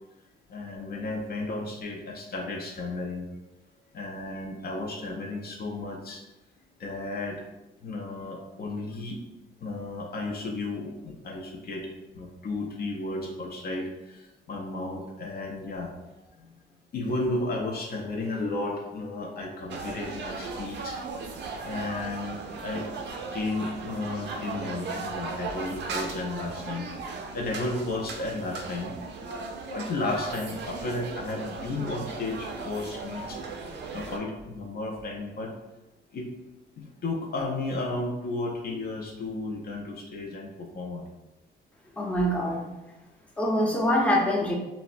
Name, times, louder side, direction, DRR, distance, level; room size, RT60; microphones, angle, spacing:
voice 1, 0.5-3.3 3.9-6.2 6.8-7.4 7.8-9.2 9.6-11.9 12.2-15.9 16.9-21.0 21.6-22.9 23.3-26.9 27.3-28.9 29.7-33.4 33.9-35.5 36.1-36.3 36.8-41.0, left 2 dB, 50° left, 0 dB, 0.5 m, -33 dB
sound 1, 19.7-34.2, right 4 dB, 60° right, 0.4 m, -37 dB
voice 2, 42.0-42.7 43.4-44.5, equal, 5° left, -2 dB, 0.6 m, -24 dB
3.3 x 2.0 x 2.5 m, 1.0 s
cardioid pair, 90°, 20 cm